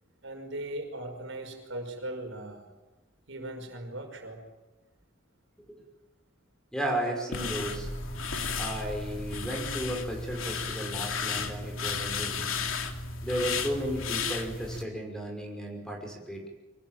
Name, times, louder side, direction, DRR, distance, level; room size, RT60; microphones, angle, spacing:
voice 1, 0.2-2.7 3.3-4.4, right 1 dB, 65° right, 3 dB, 5.5 m, -38 dB
voice 2, 6.7-7.9 8.6-12.5 13.2-16.5, right 1 dB, 5° left, 1 dB, 5.7 m, -34 dB
sound 1, 7.3-14.8, left 4 dB, 80° left, 2.8 m, -33 dB
25.5 x 20.0 x 9.2 m, 1.1 s
head